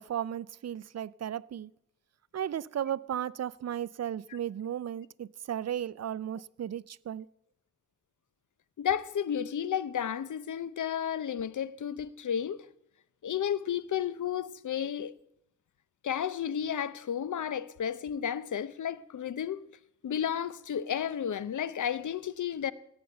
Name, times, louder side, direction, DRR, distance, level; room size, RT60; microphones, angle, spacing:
voice 1, 0.0-1.7 2.3-7.3, right 10 dB, 60° right, 0.5 m, -35 dB
voice 2, 8.8-12.6 13.2-15.1 16.0-19.6 20.0-22.7, left 9 dB, 85° left, 0.7 m, -32 dB
17.0 x 6.8 x 7.8 m
cardioid pair, 60°, 29 cm